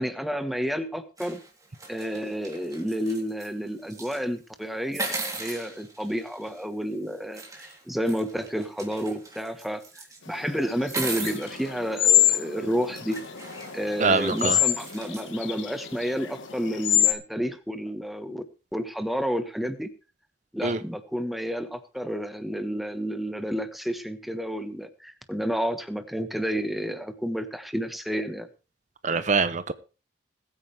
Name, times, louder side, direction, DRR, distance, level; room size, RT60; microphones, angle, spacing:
voice 1, 0.0-1.4 1.9-5.1 5.4-9.8 10.3-13.2 13.7-18.4 18.7-19.9 20.5-28.5, equal, ahead, 1.3 m, -30 dB
sound 1, 1.2-3.5 3.8-4.2 4.9-6.6 7.3-10.2 10.8-11.7 12.4-12.5 13.0-15.3, right 3 dB, 20° right, 3.3 m, -38 dB
sound 2, 10.3-17.1, left 13 dB, 85° left, 1.6 m, -26 dB
voice 2, 14.0-14.6 20.6-20.8 29.0-29.7, right 4 dB, 40° right, 0.7 m, -24 dB
21.5 x 9.0 x 3.4 m
head